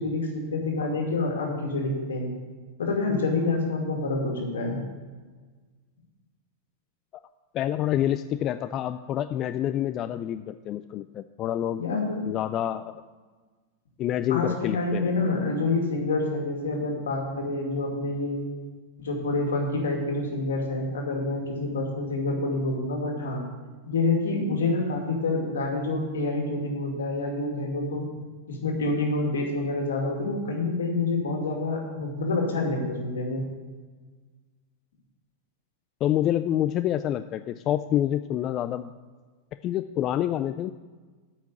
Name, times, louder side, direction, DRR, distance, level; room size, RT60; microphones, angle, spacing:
voice 1, 0.0-2.3 2.8-4.8 11.8-12.3 14.3-18.5 19.0-23.4 23.8-28.1 28.5-33.4, left 2 dB, 80° left, 1 dB, 2.3 m, -27 dB
voice 2, 7.5-11.8 12.3-13.0 14.0-15.1 36.0-38.9 39.6-40.7, left 11 dB, 40° left, 11 dB, 0.3 m, -27 dB
8.5 x 5.9 x 7.8 m, 1.4 s
hypercardioid pair, 105°, 0 cm